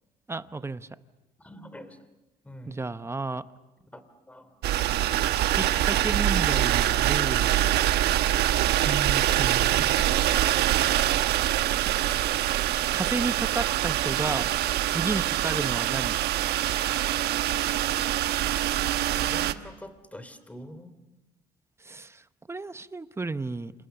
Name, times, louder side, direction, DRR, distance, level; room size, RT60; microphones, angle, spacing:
voice 1, 0.3-0.9 2.7-3.5 5.6-7.5 8.8-9.9 12.9-14.5 14.9-16.2 21.8-23.7, right 3 dB, 15° right, 13 dB, 0.9 m, -32 dB
voice 2, 1.4-2.0 2.4-2.8 3.9-4.7 9.7-10.0 19.2-20.9, left 1 dB, 10° left, 11 dB, 3.0 m, -44 dB
sound 1, 4.6-19.5, right 13 dB, 75° right, 1.1 m, -24 dB
28.5 x 27.5 x 7.0 m, 1.1 s
cardioid pair, 110°, 17 cm